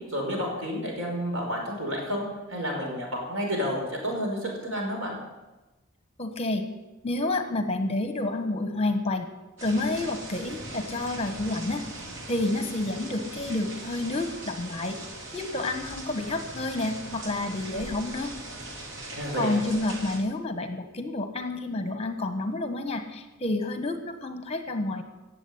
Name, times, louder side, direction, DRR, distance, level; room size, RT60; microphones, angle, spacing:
voice 1, 0.1-5.1 19.1-19.6, equal, 85° right, 0 dB, 5.4 m, -30 dB
voice 2, 6.2-6.6 7.0-9.3 9.6-11.8 12.3-15.0 15.3-18.3 19.3-25.0, left 2 dB, 30° left, 8 dB, 1.4 m, -29 dB
sound 1, 9.6-20.2, right 2 dB, 60° right, 3.5 m, -40 dB
16.5 x 7.8 x 9.8 m, 1.1 s
head